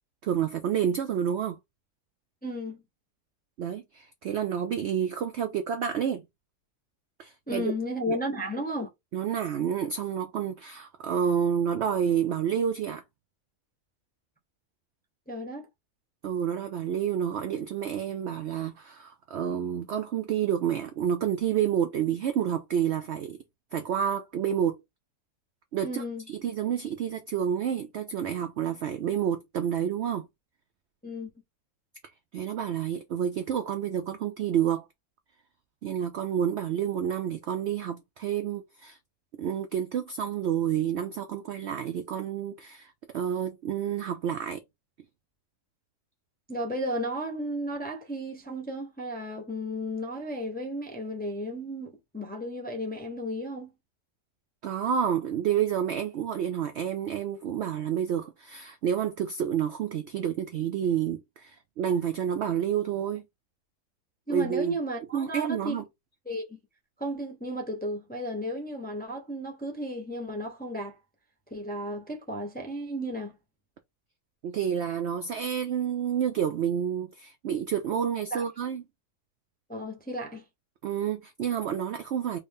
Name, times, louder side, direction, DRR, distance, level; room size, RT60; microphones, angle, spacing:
voice 1, 0.2-1.6 3.6-6.2 7.2-7.7 8.1-8.2 9.1-13.0 16.2-23.4 23.7-24.8 25.7-30.2 32.3-34.9 35.8-39.0 39.4-44.6 54.6-63.2 64.3-64.8 65.1-65.8 74.4-78.8 80.8-82.4, right 9 dB, 80° right, 0.6 m, -29 dB
voice 2, 2.4-2.8 7.5-8.9 15.3-15.7 25.8-26.2 31.0-31.3 46.5-53.7 64.3-65.8 66.3-66.6 67.0-71.0 71.5-73.4 78.3-78.4 79.7-80.4, equal, 10° left, 0.5 m, -34 dB
3.3 x 2.6 x 3.5 m
omnidirectional pair, 1.7 m